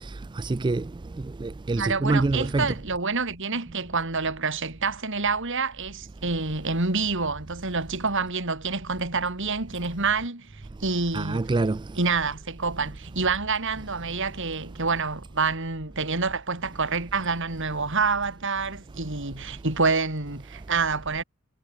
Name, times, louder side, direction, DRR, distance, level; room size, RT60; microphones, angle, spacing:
voice 1, 0.4-0.8 1.4-2.7 11.1-11.8, right 3 dB, 20° right, 0.4 m, -25 dB
voice 2, 1.7-10.5 10.8-11.5 11.9-21.2, right 4 dB, 60° right, 4.1 m, -27 dB
head